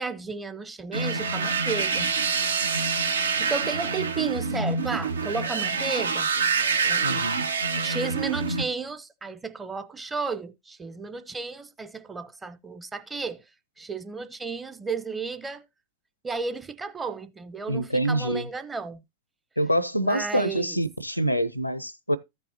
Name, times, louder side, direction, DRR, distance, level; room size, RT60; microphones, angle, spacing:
voice 1, 0.0-2.1 3.4-6.3 6.9-7.2 7.8-13.4 13.8-15.6 16.2-19.0 20.0-20.8, right 4 dB, 15° right, 0.7 m, -33 dB
sound 1, 0.9-8.6, right 5 dB, 75° right, 0.8 m, -26 dB
voice 2, 7.0-7.5 17.7-18.5 19.6-22.2, right 1 dB, 90° left, 0.6 m, -26 dB
14.5 x 5.4 x 2.8 m
figure-of-eight pair, 90°, 0 cm